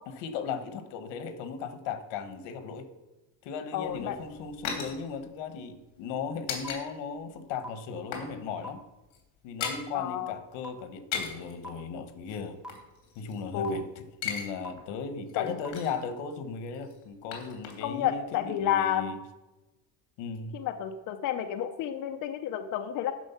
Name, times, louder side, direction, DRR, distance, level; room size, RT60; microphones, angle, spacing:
voice 1, 0.2-2.9 3.4-8.8 9.4-12.6 13.2-19.2 20.2-20.6, left 5 dB, 85° left, 10 dB, 1.4 m, -37 dB
voice 2, 3.7-4.2 9.9-10.3 13.5-13.8 15.4-15.5 17.8-19.2 20.5-23.1, left 9 dB, 50° left, 6 dB, 0.6 m, -30 dB
sound 1, 3.8-6.8 7.1-7.3 7.6-8.4 8.6-8.8 9.0-9.9 10.9-11.5 12.3-13.7 14.0-14.5 14.8-14.9 15.3-16.1 16.7-18.0 18.3-18.4, left 7 dB, 65° left, 2.8 m, -38 dB
sound 2, 6.6-6.7 7.6-7.7 8.6-8.7 9.6-9.7 10.6-10.7 11.6-11.7 12.6-12.7 13.6-13.7 14.6-14.7 15.6-15.7, equal, ahead, 0.9 m, -39 dB
11.0 x 6.4 x 5.7 m, 1.0 s
cardioid pair, 175°, 42 cm